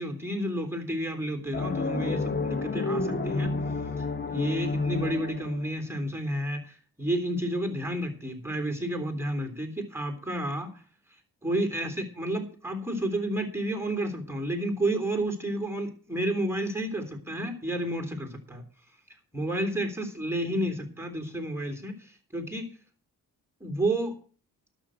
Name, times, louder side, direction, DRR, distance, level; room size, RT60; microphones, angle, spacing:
voice 1, 0.0-3.5 4.0-10.7 11.4-18.6 19.3-22.7 23.6-24.2, right 1 dB, 5° right, 3 dB, 3.3 m, -31 dB
sound 1, 1.5-5.9, left 3 dB, 30° left, 1.5 m, -30 dB
12.0 x 6.5 x 8.1 m, 0.41 s
cardioid pair, 85°, 37 cm